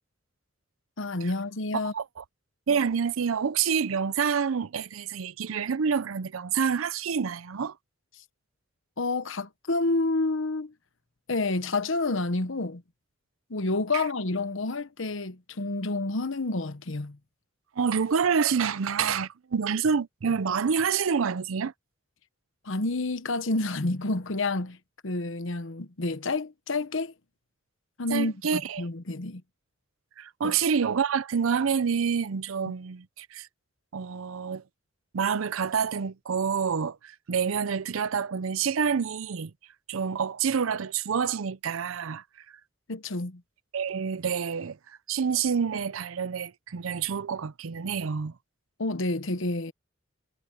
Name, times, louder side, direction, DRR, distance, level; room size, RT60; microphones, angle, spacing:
voice 1, 1.0-1.9 9.0-10.7 11.3-12.8 13.5-17.2 22.6-24.8 25.0-27.1 28.0-29.4 30.4-30.6 42.9-43.4 48.8-49.7, left 2 dB, 70° left, 1.1 m, -29 dB
voice 2, 1.9-2.2 2.7-7.8 17.8-21.7 28.1-28.8 30.2-33.5 33.9-34.6 35.1-39.5 39.9-42.2 43.7-48.3, right 6 dB, 80° right, 0.5 m, -27 dB
head